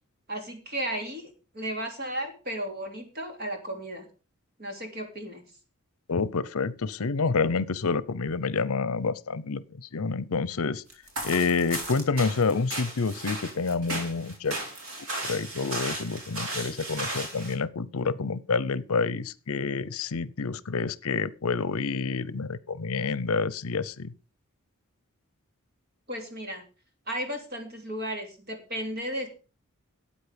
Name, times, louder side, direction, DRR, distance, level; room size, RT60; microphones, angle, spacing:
voice 1, 0.3-4.0 4.6-5.4 26.1-26.6 27.1-29.3, right 1 dB, 45° right, 3.3 m, -34 dB
voice 2, 6.1-10.8 11.2-14.6 15.2-24.1, left 4 dB, 80° left, 0.7 m, -28 dB
sound 1, 10.9-17.5, right 2 dB, 70° right, 4.1 m, -35 dB
13.0 x 8.6 x 5.2 m
head